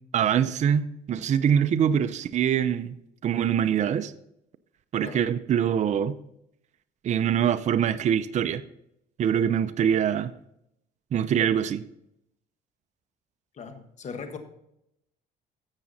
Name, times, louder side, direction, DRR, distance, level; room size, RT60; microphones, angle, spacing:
voice 1, 0.1-3.0 3.2-4.1 4.9-6.2 7.0-8.6 9.2-10.3 11.1-11.8, right 8 dB, 45° right, 11 dB, 0.5 m, -24 dB
voice 2, 13.5-14.4, left 5 dB, 45° left, 7 dB, 1.5 m, -39 dB
13.0 x 7.5 x 4.1 m, 0.80 s
cardioid pair, 110°, 17 cm